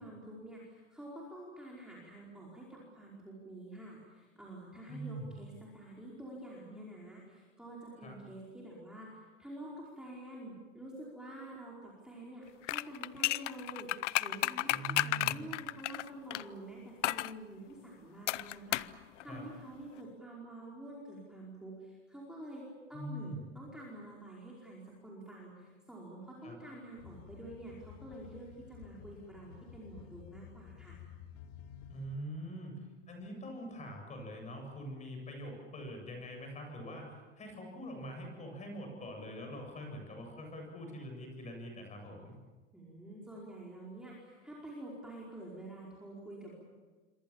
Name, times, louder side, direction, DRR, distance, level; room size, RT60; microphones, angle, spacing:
voice 1, 0.0-31.0 42.7-46.5, right 1 dB, ahead, -4 dB, 4.9 m, -48 dB
voice 2, 4.9-5.3 8.0-8.2 14.7-15.4 19.3-19.4 22.9-23.4 26.4-26.6 31.9-32.8 33.1-42.3, equal, 20° left, 3 dB, 7.8 m, -44 dB
sound 1, 12.6-16.4 17.0-17.3 18.3-19.0 19.2-19.3, left 16 dB, 70° left, 0.8 m, -32 dB
sound 2, 27.0-32.2, left 8 dB, 50° left, 2.6 m, -52 dB
27.0 x 24.5 x 7.4 m, 1.3 s
hypercardioid pair, 135°, 38 cm